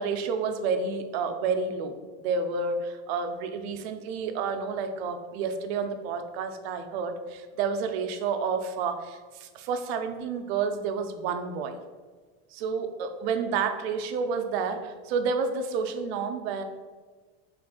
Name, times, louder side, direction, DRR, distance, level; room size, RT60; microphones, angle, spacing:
voice 1, 0.0-1.9 2.2-11.8 12.5-16.6, right 5 dB, 85° right, 7 dB, 0.5 m, -30 dB
3.2 x 2.5 x 3.6 m, 1.4 s
cardioid pair, 170°, 30 cm